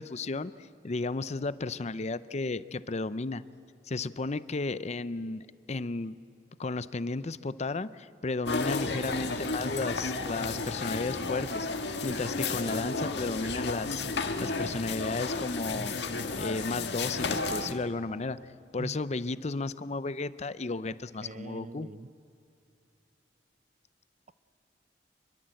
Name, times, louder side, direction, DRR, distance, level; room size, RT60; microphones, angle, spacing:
voice 1, 0.0-3.4 3.9-6.2 6.6-11.7 12.0-14.1 14.4-16.0 16.4-18.4 18.7-21.9, left 3 dB, 40° left, 0.6 m, -33 dB
sound 1, 8.5-17.7, left 3 dB, 70° left, 1.8 m, -32 dB
voice 2, 21.2-22.1, right 2 dB, 45° right, 0.7 m, -42 dB
26.5 x 22.0 x 7.8 m
head